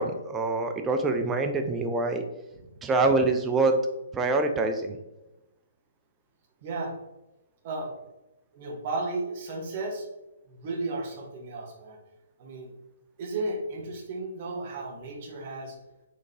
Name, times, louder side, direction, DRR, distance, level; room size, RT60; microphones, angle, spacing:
voice 1, 0.0-2.2 2.8-3.9 4.1-5.0, right 3 dB, 15° right, 5 dB, 0.4 m, -25 dB
voice 2, 6.6-6.9 7.6-7.9 8.5-10.1 10.5-12.0 12.4-12.7 13.2-15.7, right 2 dB, 40° right, 0 dB, 1.0 m, -34 dB
4.2 x 3.0 x 2.8 m, 0.97 s
figure-of-eight pair, 125°, 0 cm